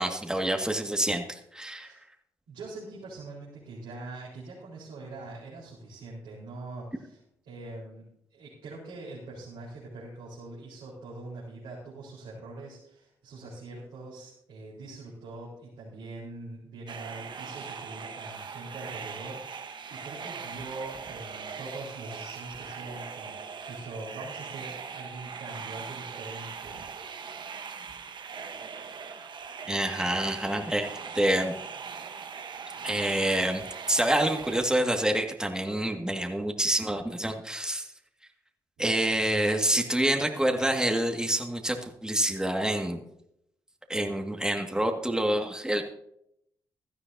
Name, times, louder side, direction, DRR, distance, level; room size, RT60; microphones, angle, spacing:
voice 1, 0.0-1.9 29.7-30.9 31.1-31.6 32.8-37.9 38.8-43.0 43.9-45.8, right 1 dB, 10° right, 3 dB, 2.0 m, -27 dB
voice 2, 2.5-7.2 7.5-8.0 8.3-23.3 23.7-27.0, right 2 dB, 80° right, -7 dB, 4.4 m, -43 dB
sound 1, 16.9-34.7, right 6 dB, 55° right, 1.2 m, -40 dB
16.5 x 13.0 x 2.8 m, 0.74 s
hypercardioid pair, 45°, 9 cm